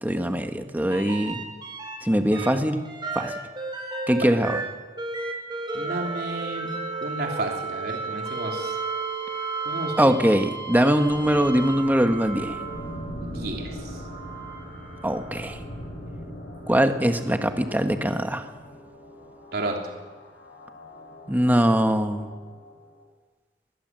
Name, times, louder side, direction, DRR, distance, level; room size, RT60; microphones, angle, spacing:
voice 1, 0.0-1.4 2.0-2.9 3.1-3.3 4.1-4.6 10.0-12.6 15.0-15.6 16.7-18.5 21.3-22.3, equal, 10° right, 6 dB, 1.5 m, -22 dB
sound 1, 0.9-2.0 2.3-13.1 13.9-15.5 17.2-17.3, right 4 dB, 25° right, 4.8 m, -33 dB
voice 2, 4.2-4.6 5.7-6.7 7.0-8.7 9.7-10.1 13.2-14.0 19.5-19.9, right 1 dB, 60° right, 1 dB, 3.4 m, -32 dB
sound 2, 11.1-23.0, equal, 70° left, 7.2 m, -41 dB
22.0 x 20.5 x 7.7 m, 1.4 s
head